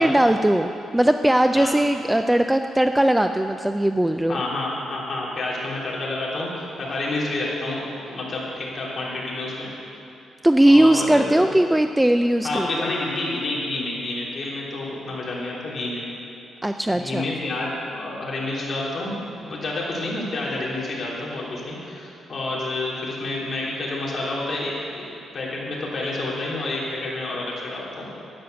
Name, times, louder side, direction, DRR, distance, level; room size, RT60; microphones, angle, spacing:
voice 1, 0.0-4.4 10.4-12.9 16.6-17.3, right 1 dB, 5° right, 7 dB, 0.3 m, -19 dB
voice 2, 4.3-9.7 10.6-11.5 12.4-16.0 16.9-25.1 25.3-28.1, left 2 dB, 40° left, -5 dB, 3.3 m, -29 dB
12.0 x 9.4 x 6.9 m, 2.9 s
cardioid pair, 140°, 0 cm